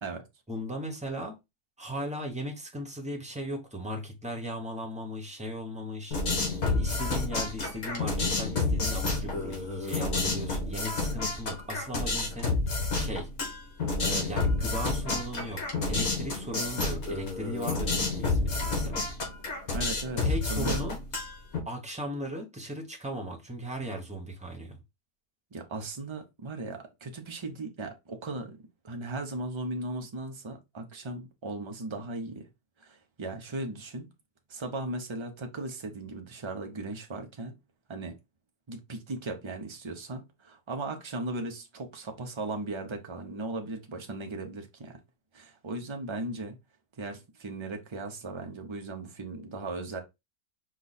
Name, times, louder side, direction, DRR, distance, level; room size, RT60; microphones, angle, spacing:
voice 1, 0.5-1.4 1.8-6.2 6.6-12.6 12.9-13.3 14.0-15.6 15.9-19.1 20.2-21.0 21.6-24.8, equal, 5° right, 1.0 m, -37 dB
sound 1, 6.1-21.6, left 3 dB, 70° left, 2.0 m, -30 dB
voice 2, 19.7-20.2 20.5-20.8 25.5-28.6 28.8-32.4 32.8-34.1 34.5-37.5 37.9-38.2 38.7-45.0 45.3-46.6 47.0-50.0, right 2 dB, 30° right, 0.6 m, -37 dB
5.2 x 2.4 x 4.1 m
omnidirectional pair, 1.6 m